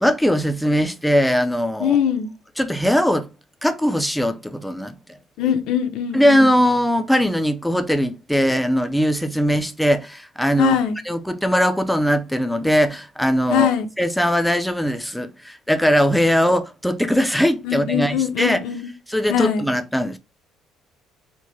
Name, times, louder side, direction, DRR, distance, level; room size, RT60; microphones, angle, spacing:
voice 1, 0.0-2.0 2.6-3.3 3.6-5.2 6.1-10.8 11.0-13.7 14.0-18.6 19.1-20.2, equal, ahead, 0.4 m, -20 dB
voice 2, 1.8-2.3 5.4-6.5 10.6-11.0 13.5-13.9 17.6-18.9 19.3-19.6, left 9 dB, 75° left, 0.7 m, -21 dB
4.6 x 2.1 x 4.0 m
cardioid pair, 160°, 0 cm